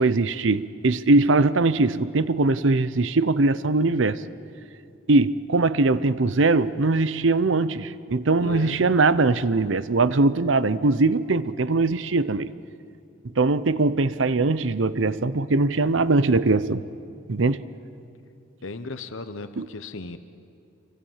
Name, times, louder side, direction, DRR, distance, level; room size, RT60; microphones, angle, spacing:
voice 1, 0.0-4.2 5.1-12.5 13.4-16.8 17.3-17.6 19.6-19.7, right 3 dB, 80° right, 15 dB, 0.7 m, -21 dB
voice 2, 8.4-8.8 18.6-20.2, left 3 dB, 90° left, 10 dB, 1.0 m, -36 dB
27.5 x 24.5 x 7.4 m, 2.6 s
head